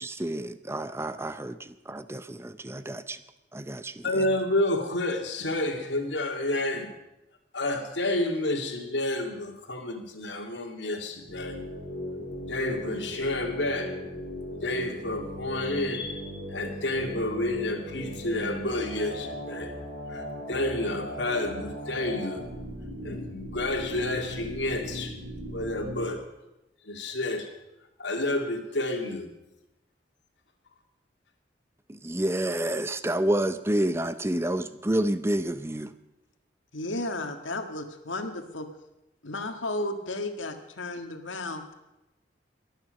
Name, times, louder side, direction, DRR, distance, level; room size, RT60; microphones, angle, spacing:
voice 1, 0.0-2.2 2.7-3.2 3.5-4.3 31.9-35.9, right 1 dB, 15° right, 12 dB, 0.6 m, -29 dB
voice 2, 4.0-6.9 7.5-11.6 12.5-14.0 14.6-19.7 20.1-22.5 23.0-25.1 25.5-26.3 26.9-27.5 28.0-29.3, left 1 dB, 70° left, 3 dB, 2.3 m, -30 dB
sound 1, 11.3-26.1, equal, 40° right, 5.7 m, -38 dB
voice 3, 36.7-38.7 39.2-41.6, left 2 dB, 90° left, 6 dB, 1.7 m, -33 dB
22.5 x 9.0 x 6.4 m, 0.92 s
head